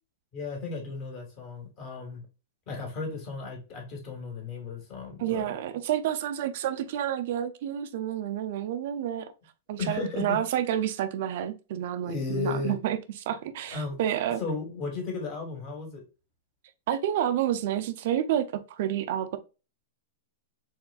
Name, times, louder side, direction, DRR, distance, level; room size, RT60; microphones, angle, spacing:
voice 1, 0.3-2.2 2.7-5.5 9.8-10.4 12.0-12.7 13.7-14.0 14.4-16.0, left 4 dB, 35° left, 1.9 m, -34 dB
voice 2, 5.2-9.3 9.7-13.0 13.3-14.4 16.9-19.4, right 10 dB, 50° right, 0.5 m, -29 dB
4.6 x 3.6 x 2.4 m
supercardioid pair, 160°, 0 cm